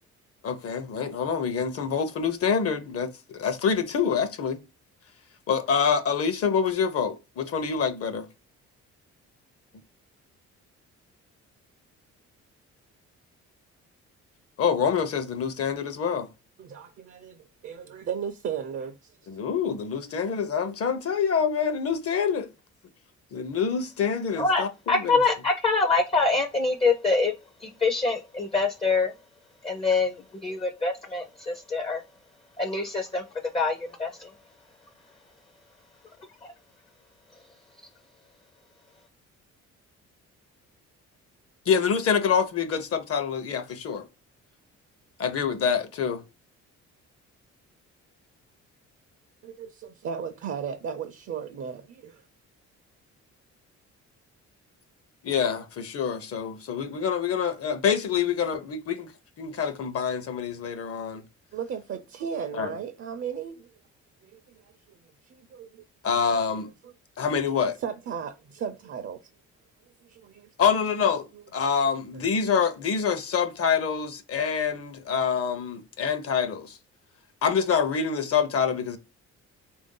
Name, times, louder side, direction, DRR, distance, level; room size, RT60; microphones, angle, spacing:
voice 1, 0.4-4.6 5.5-8.3 14.6-16.3 19.3-22.5 23.3-25.2 41.7-44.1 45.2-46.2 55.2-59.1 59.4-61.2 62.5-62.7 66.0-66.7 67.2-67.8 70.6-76.8 77.4-79.0, left 6 dB, 50° left, 0.7 m, -26 dB
voice 2, 16.6-19.2 49.4-52.2 61.5-63.7 64.2-64.7 65.2-65.8 67.8-69.2 70.0-70.5, right 7 dB, 50° right, 0.5 m, -35 dB
voice 3, 24.4-27.3 27.6-29.1 29.6-32.0 32.6-33.2 33.5-34.3, left 3 dB, 20° left, 0.4 m, -25 dB
3.4 x 2.6 x 3.7 m
cardioid pair, 90°, 30 cm